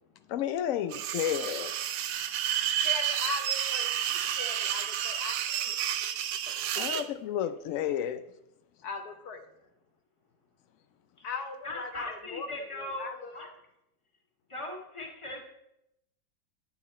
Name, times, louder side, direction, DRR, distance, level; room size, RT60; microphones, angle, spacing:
voice 1, 0.3-1.7 6.7-8.2, left 10 dB, 80° left, 11 dB, 0.7 m, -31 dB
sound 1, 0.9-7.1, right 10 dB, 70° right, 1.1 m, -31 dB
voice 2, 2.7-5.8 6.5-6.6 8.8-9.4 11.2-12.5 12.7-13.3, left 4 dB, 60° left, 5 dB, 1.4 m, -39 dB
voice 3, 11.6-13.5 14.5-15.5, left 2 dB, 15° left, 1 dB, 1.7 m, -39 dB
11.0 x 8.6 x 4.2 m, 0.84 s
omnidirectional pair, 2.0 m